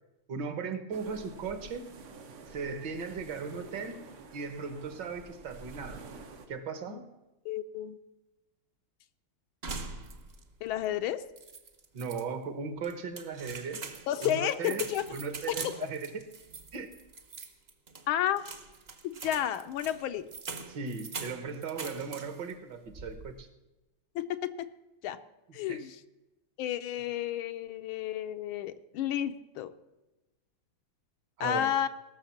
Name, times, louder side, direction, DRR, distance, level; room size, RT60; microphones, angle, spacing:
voice 1, 0.3-1.9 2.5-4.0 4.3-6.0 6.5-7.0 11.9-13.8 14.2-14.9 15.1-16.2 16.7-16.9 20.7-23.5 25.7-25.8 31.4-31.7, right 5 dB, 60° right, 10 dB, 1.6 m, -37 dB
sound 1, 0.9-6.5, right 3 dB, 80° right, 2.2 m, -49 dB
voice 2, 7.4-8.0 10.6-11.3 14.1-15.0 15.5-15.8 18.1-18.4 19.0-20.3 24.1-24.7 25.0-25.2 25.5-26.0 26.6-29.7 31.4-31.9, left 11 dB, 75° left, 10 dB, 1.5 m, -31 dB
sound 2, 9.6-10.5 10.8-10.9 11.4-12.2 12.8-22.5 22.9-23.4, right 4 dB, 40° right, 0.9 m, -43 dB
17.5 x 6.5 x 7.2 m, 1.0 s
omnidirectional pair, 2.4 m